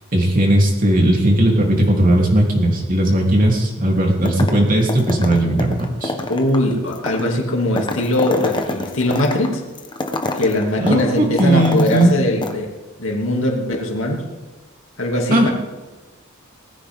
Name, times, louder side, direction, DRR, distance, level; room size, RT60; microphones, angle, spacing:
voice 1, 0.1-6.1 10.8-12.2 15.3-15.5, right 1 dB, 40° right, -1 dB, 3.3 m, -17 dB
sound 1, 4.2-4.6 4.9-12.1 12.4-12.5, left 2 dB, 20° left, 1.2 m, -27 dB
voice 2, 6.3-9.6 10.3-12.7 13.0-14.3 15.0-15.5, left 1 dB, 65° left, 0 dB, 2.7 m, -20 dB
20.0 x 15.0 x 3.7 m, 1.2 s
head